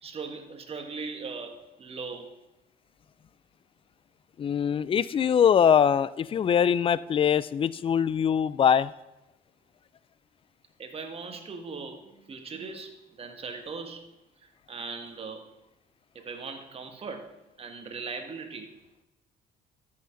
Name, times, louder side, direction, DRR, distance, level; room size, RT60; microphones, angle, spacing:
voice 1, 0.0-2.3 10.8-14.1 14.4-15.4 16.1-18.7, right 4 dB, 35° right, 5 dB, 1.6 m, -39 dB
voice 2, 4.4-8.9, left 8 dB, 30° left, 18 dB, 0.4 m, -23 dB
13.0 x 6.9 x 5.1 m, 0.96 s
cardioid pair, 110°, 17 cm